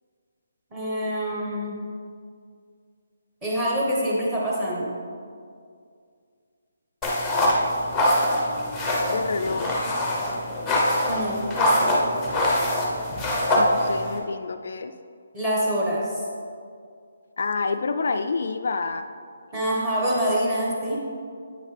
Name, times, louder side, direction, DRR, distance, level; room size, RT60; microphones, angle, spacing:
voice 1, 0.7-1.8 3.4-4.9 11.1-11.5 15.3-16.2 19.5-21.0, equal, 10° right, -5 dB, 1.2 m, -25 dB
sound 1, 7.0-14.2, left 1 dB, 5° left, 0.7 m, -23 dB
voice 2, 9.1-9.7 13.6-14.9 17.4-19.1, left 4 dB, 55° left, 7 dB, 0.3 m, -28 dB
8.6 x 6.4 x 3.3 m, 2.2 s
hypercardioid pair, 175°, 0 cm